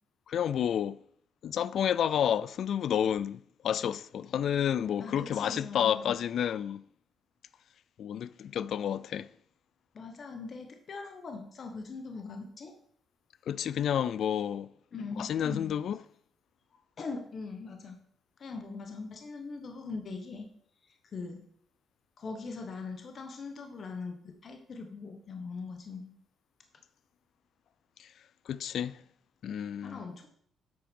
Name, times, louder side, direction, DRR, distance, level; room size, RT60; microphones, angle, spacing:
voice 1, 0.3-1.0 1.4-6.8 8.0-9.3 13.5-14.7 15.2-16.0 28.0-28.1 28.5-29.0 29.4-30.1, left 9 dB, 65° left, 0.3 m, -30 dB
voice 2, 5.0-6.2 6.5-6.6 9.9-12.7 14.9-15.7 17.0-18.0 18.4-20.5 20.8-21.4 22.2-26.1 29.8-30.3, left 4 dB, 50° left, 1.2 m, -41 dB
7.9 x 4.8 x 5.2 m
cardioid pair, 90°, 0 cm